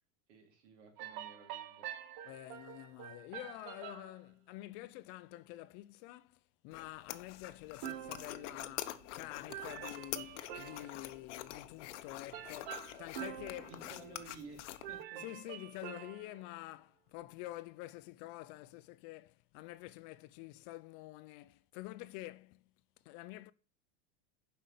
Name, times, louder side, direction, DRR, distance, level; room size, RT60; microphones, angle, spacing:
voice 1, 0.3-1.9 13.7-15.2, right 3 dB, 75° right, 3.8 m, -54 dB
sound 1, 1.0-4.2 7.8-9.2 9.5-11.2 12.3-14.5 14.8-16.5, right 10 dB, 55° right, 1.1 m, -47 dB
voice 2, 2.2-14.0 15.2-22.6 23.0-23.5, left 17 dB, 45° left, 0.5 m, -48 dB
sound 2, 6.7-15.0, left 14 dB, 85° left, 0.9 m, -46 dB
7.6 x 5.3 x 6.8 m
supercardioid pair, 155°, 35 cm